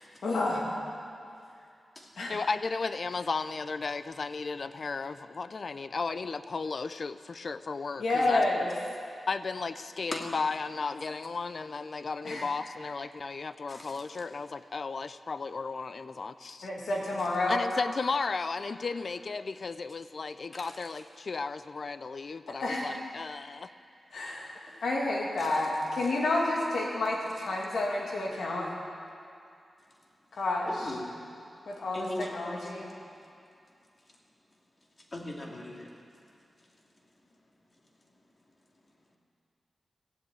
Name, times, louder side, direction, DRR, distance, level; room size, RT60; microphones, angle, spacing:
voice 1, 0.2-0.7 2.2-2.4 8.0-8.7 12.2-12.5 16.6-17.6 22.5-22.9 24.1-28.7 30.3-31.0 31.7-32.9, left 2 dB, 85° left, -2 dB, 2.6 m, -30 dB
voice 2, 2.3-8.4 9.3-16.7 17.5-23.7, left 4 dB, 60° left, 13 dB, 0.5 m, -34 dB
voice 3, 30.7-31.1 31.9-32.8 35.1-35.9, left 1 dB, 40° left, -1 dB, 2.7 m, -39 dB
15.5 x 8.0 x 9.0 m, 2.5 s
cardioid pair, 55°, 0 cm